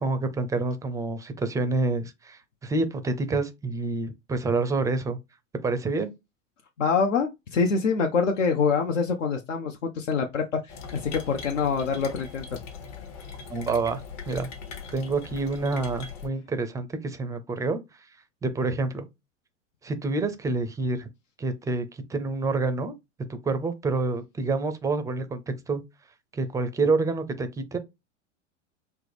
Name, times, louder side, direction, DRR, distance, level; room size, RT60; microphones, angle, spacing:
voice 1, 0.0-5.2 5.6-6.1 13.5-14.5 14.9-17.8 18.4-19.1 19.8-21.1 21.4-22.9 23.3-25.8 26.3-27.8, right 3 dB, 10° right, 0.4 m, -28 dB
voice 2, 6.8-12.6, left 5 dB, 70° left, 0.7 m, -25 dB
sound 1, 10.7-16.3, left 5 dB, 45° left, 1.0 m, -40 dB
4.5 x 2.0 x 3.3 m
figure-of-eight pair, 90°, 38 cm